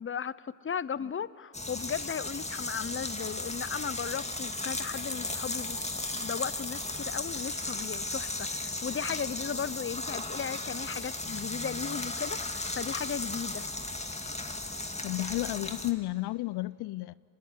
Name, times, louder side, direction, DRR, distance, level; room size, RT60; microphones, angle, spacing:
voice 1, 0.0-5.8 6.1-13.7, left 7 dB, 30° left, 19 dB, 0.8 m, -36 dB
sound 1, 1.5-15.9, left 2 dB, 15° left, 2.3 m, -36 dB
sound 2, 4.8-10.7, right 4 dB, 55° right, 7.9 m, -54 dB
voice 2, 15.0-17.1, left 18 dB, 80° left, 19 dB, 0.5 m, -32 dB
24.5 x 20.0 x 9.6 m, 2.6 s
cardioid pair, 65°, 39 cm